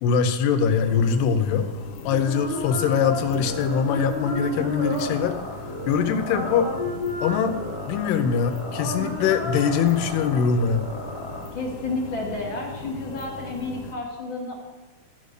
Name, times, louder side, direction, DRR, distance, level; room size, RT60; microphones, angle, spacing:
voice 1, 0.0-1.7 2.0-5.4 5.9-6.7 7.2-7.6 7.9-10.9, left 6 dB, 80° left, 8 dB, 2.8 m, -22 dB
sound 1, 0.6-13.9, left 3 dB, 65° left, 2.3 m, -39 dB
Quarreling old couple, 2.1-11.4, left 1 dB, 10° left, 1.1 m, -33 dB
voice 2, 11.5-14.5, left 2 dB, 40° left, -2 dB, 2.0 m, -31 dB
14.0 x 5.5 x 6.5 m, 1.3 s
omnidirectional pair, 4.6 m